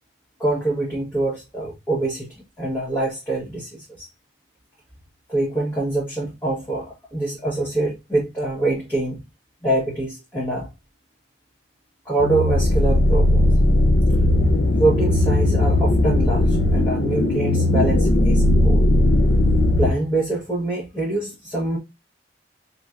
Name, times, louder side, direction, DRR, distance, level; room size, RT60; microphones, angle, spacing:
voice 1, 0.4-2.3 2.6-4.1 5.3-6.9 7.1-9.2 9.6-10.7 12.0-13.4 14.8-18.9 19.8-21.8, right 2 dB, 15° left, 1.3 m, -24 dB
sound 1, 12.2-19.9, left 1 dB, 85° left, 0.6 m, -18 dB
5.0 x 3.0 x 2.5 m
head